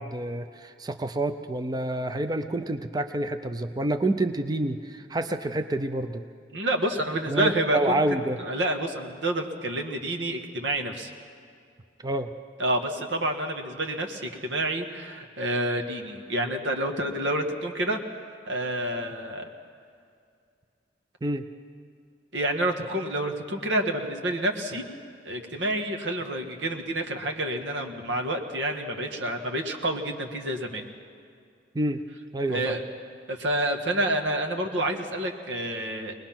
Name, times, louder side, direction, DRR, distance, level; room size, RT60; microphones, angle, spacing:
voice 1, 0.0-6.2 7.3-8.4 12.0-12.3 21.2-21.5 31.7-32.0 32.3-32.8, right 1 dB, 20° right, 8 dB, 0.5 m, -28 dB
voice 2, 6.5-11.1 12.6-18.0 18.5-19.5 22.3-24.9 25.3-30.9 32.5-32.8 33.3-36.2, right 1 dB, 85° right, 4 dB, 1.7 m, -28 dB
23.5 x 20.0 x 5.9 m, 2.3 s
head